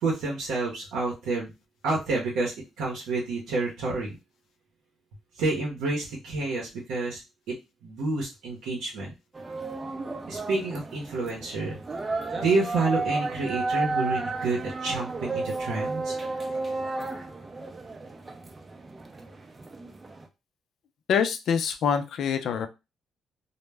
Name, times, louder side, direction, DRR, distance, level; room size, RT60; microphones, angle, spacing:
voice 1, 0.0-1.5 1.8-4.2 5.4-7.2 7.5-7.6 7.8-9.1 10.3-11.8 12.3-16.1, right 3 dB, 90° right, -2 dB, 0.7 m, -29 dB
sound 1, 9.3-20.3, right 3 dB, 25° right, 0.5 m, -33 dB
voice 2, 21.1-22.7, left 7 dB, 70° left, 8 dB, 0.4 m, -25 dB
2.1 x 2.0 x 3.3 m, 0.25 s
cardioid pair, 90°, 0 cm